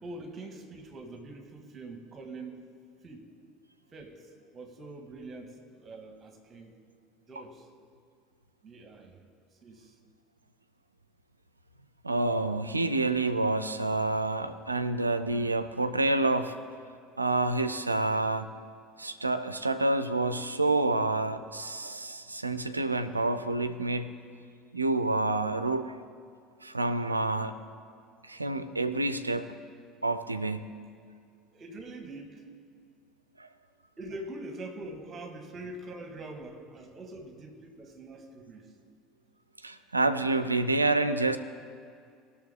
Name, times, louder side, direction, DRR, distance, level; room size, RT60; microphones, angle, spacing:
voice 1, 0.0-2.6 3.0-3.3 3.9-6.7 7.3-7.7 8.6-9.2 9.6-10.0 31.5-32.4 34.0-38.7, right 2 dB, 30° right, 4 dB, 1.7 m, -44 dB
voice 2, 12.0-16.5 17.2-18.5 19.0-24.1 24.7-26.0 26.6-27.6 28.2-29.4 30.0-30.7 33.4-33.5 39.6-41.4, right 2 dB, 90° right, 11 dB, 0.5 m, -28 dB
19.0 x 6.4 x 3.7 m, 2.2 s
figure-of-eight pair, 65°, 0 cm